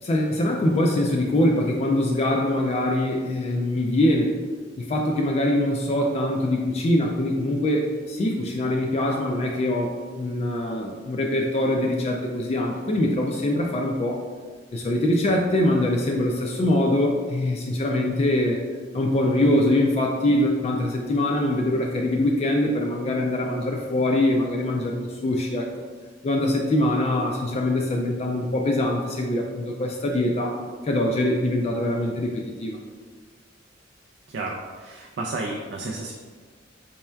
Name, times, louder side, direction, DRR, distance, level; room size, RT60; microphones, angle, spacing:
voice 1, 0.0-4.3 4.8-14.2 14.7-18.6 18.9-25.7 26.2-32.8, left 1 dB, 35° left, 1 dB, 0.3 m, -23 dB
voice 2, 34.3-36.1, right 2 dB, 60° right, -1 dB, 0.3 m, -32 dB
4.3 x 3.4 x 2.2 m, 1.5 s
head